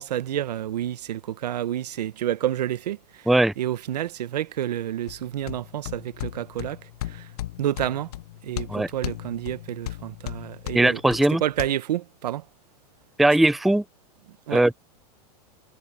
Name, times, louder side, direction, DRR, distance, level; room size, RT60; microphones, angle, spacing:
voice 1, 0.0-3.3 3.6-7.3 7.6-8.1 8.4-11.0 11.4-12.4 14.5-14.6, right 12 dB, 85° right, 1.3 m, -29 dB
sound 1, 5.1-11.7, left 14 dB, 70° left, 0.7 m, -37 dB
voice 2, 10.7-11.4 13.2-13.8 14.5-14.7, right 1 dB, ahead, 0.5 m, -19 dB
supercardioid pair, 145°, 20 cm